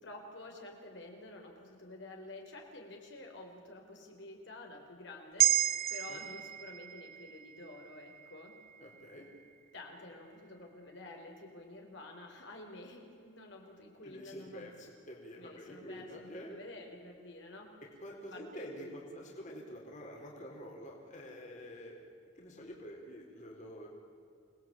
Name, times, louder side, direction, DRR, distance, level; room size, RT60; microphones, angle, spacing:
voice 1, 0.0-5.6 5.9-8.5 9.7-14.7 15.4-17.7 18.3-18.9, left 2 dB, 60° left, 1 dB, 4.3 m, -50 dB
sound 1, 5.4-9.9 10.3-10.4, right 12 dB, 45° right, 0.8 m, -34 dB
voice 2, 8.8-9.3 14.0-16.6 18.0-22.0 22.3-23.9, equal, 35° left, -1 dB, 4.2 m, -47 dB
28.5 x 20.0 x 8.9 m, 2.5 s
head